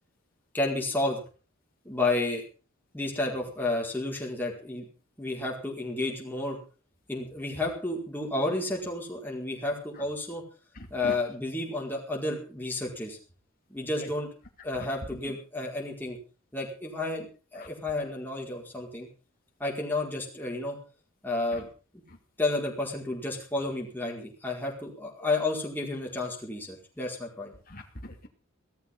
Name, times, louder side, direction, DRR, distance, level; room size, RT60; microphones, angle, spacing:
voice 1, 0.5-1.2 1.8-2.4 2.9-4.8 5.2-6.6 7.1-10.4 10.9-13.2 13.7-14.3 14.6-16.2 16.5-19.1 19.6-20.8 21.2-21.7 22.4-27.5, left 2 dB, 10° left, -2 dB, 4.8 m, -31 dB
voice 2, 10.8-11.1 14.0-14.1 17.6-17.7 21.5-21.6 27.7-28.3, left 1 dB, 45° left, 2 dB, 2.6 m, -41 dB
16.5 x 13.5 x 5.6 m, 0.37 s
head